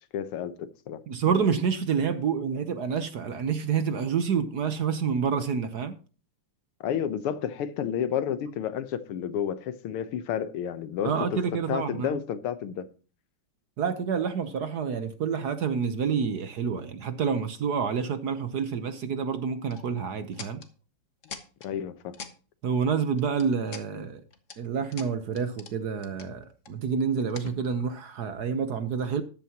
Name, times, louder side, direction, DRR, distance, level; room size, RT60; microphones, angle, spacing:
voice 1, 0.1-1.0 6.8-11.1 11.5-12.9 21.6-22.2, left 9 dB, 85° left, 1.9 m, -31 dB
voice 2, 1.1-6.0 11.0-12.2 13.8-20.6 22.6-24.2 24.6-29.2, right 6 dB, 60° right, 1.2 m, -28 dB
sound 1, 19.7-19.8 20.3-20.7 21.2-21.7 22.1-22.3 23.2-23.9 24.3-24.6 24.9-25.7 26.0-26.7 27.3-27.9, left 5 dB, 40° left, 1.4 m, -43 dB
13.5 x 11.0 x 2.9 m
omnidirectional pair, 2.4 m